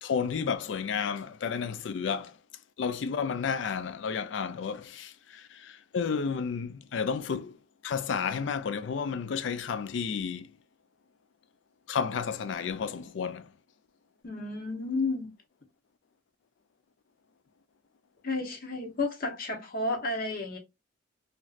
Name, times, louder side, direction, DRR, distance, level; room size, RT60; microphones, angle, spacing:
voice 1, 0.0-2.4 2.8-7.6 7.8-10.5 11.9-13.5, left 6 dB, 65° left, 0.4 m, -32 dB
voice 2, 14.2-15.3 18.2-20.6, left 2 dB, 45° left, 0.9 m, -32 dB
3.1 x 2.6 x 2.4 m
head